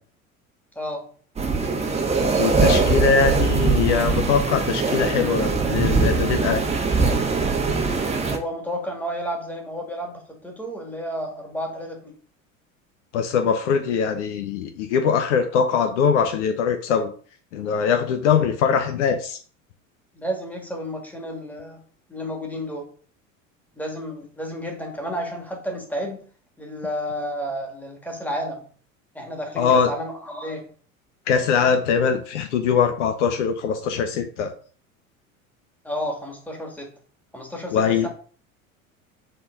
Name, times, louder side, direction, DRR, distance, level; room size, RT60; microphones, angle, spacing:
voice 1, 0.8-1.1 8.3-12.1 20.1-21.8 22.1-22.9 23.8-26.2 26.6-28.6 29.1-30.7 35.8-36.9 37.3-38.1, equal, 5° left, 1.9 m, -31 dB
sound 1, 1.4-8.4, right 4 dB, 15° right, 1.2 m, -21 dB
voice 2, 2.4-6.6 13.1-17.1 17.5-19.4 29.6-29.9 31.3-34.5 37.7-38.1, left 6 dB, 60° left, 0.9 m, -22 dB
7.9 x 3.7 x 3.7 m
figure-of-eight pair, 75°, 41 cm